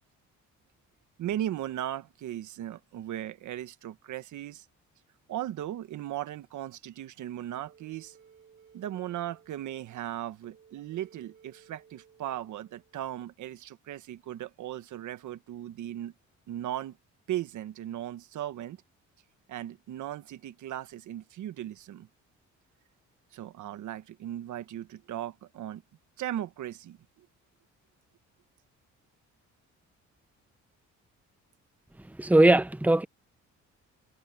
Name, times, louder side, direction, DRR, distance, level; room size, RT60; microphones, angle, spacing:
voice 1, 1.2-4.6 5.3-8.2 8.7-16.1 16.5-17.0 17.3-18.8 19.5-22.1 23.3-25.8 26.2-27.3, right 12 dB, 75° right, 1.4 m, -37 dB
sound 1, 7.7-13.2, right 7 dB, 25° right, 3.9 m, -59 dB
voice 2, 32.2-33.0, right 1 dB, 5° right, 1.0 m, -20 dB
cardioid pair, 90°, 30 cm